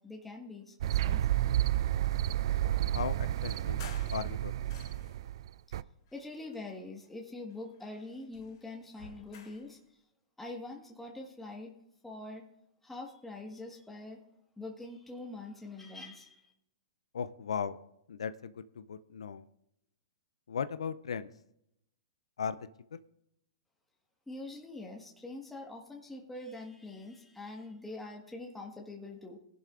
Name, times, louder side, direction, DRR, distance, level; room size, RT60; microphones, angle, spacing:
voice 1, 0.0-1.4 6.1-9.8 10.4-11.7 12.0-12.4 12.8-14.2 14.6-16.4 24.3-29.4, left 2 dB, 5° left, 0 dB, 1.5 m, -44 dB
sound 1, 0.8-5.8, right 13 dB, 60° right, 0.4 m, -31 dB
voice 2, 2.9-3.8 4.1-4.7 17.1-17.8 18.1-19.5 20.5-21.3 22.4-22.6, left 7 dB, 75° left, 12 dB, 0.5 m, -37 dB
sound 2, 3.5-5.3 6.0-7.2 7.5-9.7, left 6 dB, 55° left, 2.9 m, -54 dB
19.5 x 11.0 x 2.5 m, 0.79 s
hypercardioid pair, 115°, 3 cm